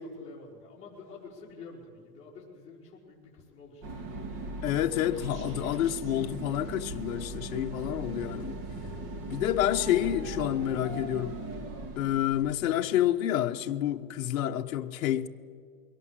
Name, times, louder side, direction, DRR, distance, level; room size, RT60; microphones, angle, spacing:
voice 1, 0.0-4.1 7.8-8.1, left 4 dB, 15° left, 4.5 m, -49 dB
sound 1, 3.8-12.8, right 2 dB, 30° right, 1.8 m, -39 dB
voice 2, 4.6-8.6 9.3-11.4 12.0-15.3, left 12 dB, 60° left, 0.9 m, -28 dB
22.5 x 17.5 x 7.5 m
supercardioid pair, 155°, 48 cm